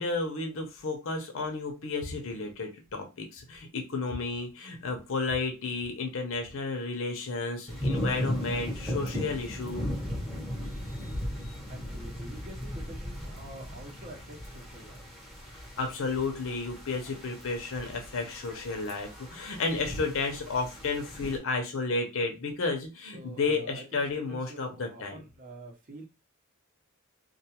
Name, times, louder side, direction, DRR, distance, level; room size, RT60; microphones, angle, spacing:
voice 1, 0.0-9.9 11.0-11.1 11.4-11.6 15.8-25.2, left 3 dB, 65° left, 0.7 m, -32 dB
sound 1, 7.7-21.4, equal, ahead, 0.8 m, -37 dB
voice 2, 11.7-15.0 23.1-26.1, right 1 dB, 40° right, 0.8 m, -47 dB
2.4 x 2.3 x 2.9 m
head